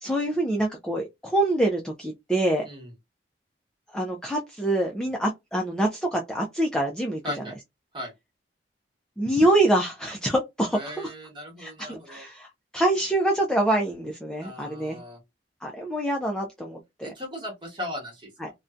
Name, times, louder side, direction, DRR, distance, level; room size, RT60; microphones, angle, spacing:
voice 1, 0.0-2.7 3.9-7.2 9.2-11.1 11.6-12.5 12.7-15.0 15.6-17.1 18.4-18.5, right 1 dB, 5° left, 0.3 m, -25 dB
voice 2, 7.2-7.5 7.9-8.1 10.7-12.2 14.4-15.2 17.0-18.3, left 1 dB, 25° right, 1.2 m, -37 dB
2.6 x 2.1 x 2.3 m
head